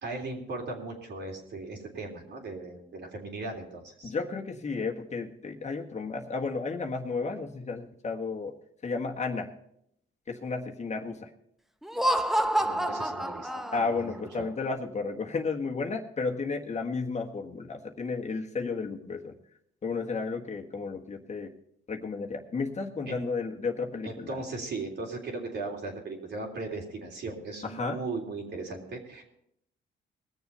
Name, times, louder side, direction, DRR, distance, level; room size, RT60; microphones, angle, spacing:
voice 1, 0.0-4.1 12.6-14.5 23.1-23.2 24.0-29.2, right 3 dB, 60° right, 1 dB, 3.4 m, -38 dB
voice 2, 4.0-8.6 8.8-9.5 10.3-11.3 13.7-19.4 19.8-21.5 21.9-24.4 27.6-28.0, left 4 dB, 35° left, 2 dB, 1.5 m, -33 dB
Laughter, 11.8-14.2, right 1 dB, ahead, 0.7 m, -28 dB
20.0 x 7.1 x 5.5 m, 0.73 s
cardioid pair, 90°, 20 cm